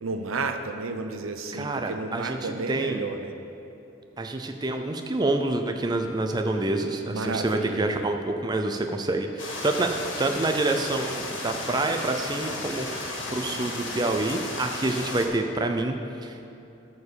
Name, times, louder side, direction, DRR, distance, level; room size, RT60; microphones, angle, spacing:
voice 1, 0.0-3.3 7.0-8.1, right 3 dB, 90° right, 7 dB, 0.7 m, -32 dB
voice 2, 1.5-3.0 4.2-9.9 10.2-16.5, right 2 dB, 20° right, 5 dB, 0.4 m, -27 dB
sound 1, 9.4-15.3, left 2 dB, 70° left, 1.8 m, -34 dB
13.0 x 4.4 x 6.9 m, 2.9 s
head